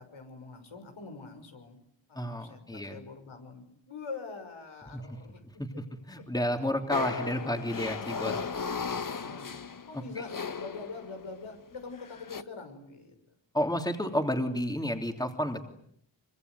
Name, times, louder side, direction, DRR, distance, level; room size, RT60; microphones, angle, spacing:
voice 1, 0.0-1.8 2.1-5.4 8.8-9.6 9.9-13.1, left 4 dB, 85° left, 5 dB, 6.2 m, -44 dB
voice 2, 2.1-3.0 4.9-5.0 5.6-5.7 6.1-8.4 13.5-15.6, equal, 10° left, 5 dB, 3.2 m, -31 dB
sound 1, 6.9-11.4 12.0-12.4, left 5 dB, 45° left, 1.3 m, -36 dB
25.0 x 24.5 x 9.5 m, 0.70 s
wide cardioid pair, 105°, 46 cm